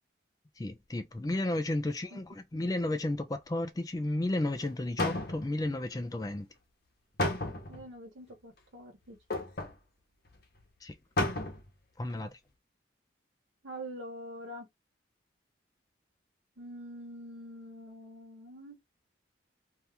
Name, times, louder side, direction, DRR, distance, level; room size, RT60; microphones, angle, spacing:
voice 1, 0.6-6.5 10.8-10.9 12.0-12.3, left 1 dB, 20° left, 0.3 m, -33 dB
sound 1, 4.6-4.7 5.0-5.7 7.2-7.9 9.3-9.8 10.3-10.4 10.6-10.7 11.2-11.7 12.1-12.2, left 2 dB, 50° left, 0.8 m, -32 dB
voice 2, 7.7-9.2 13.6-14.7 16.6-18.8, right 1 dB, 85° right, 1.2 m, -45 dB
2.7 x 2.4 x 3.3 m
head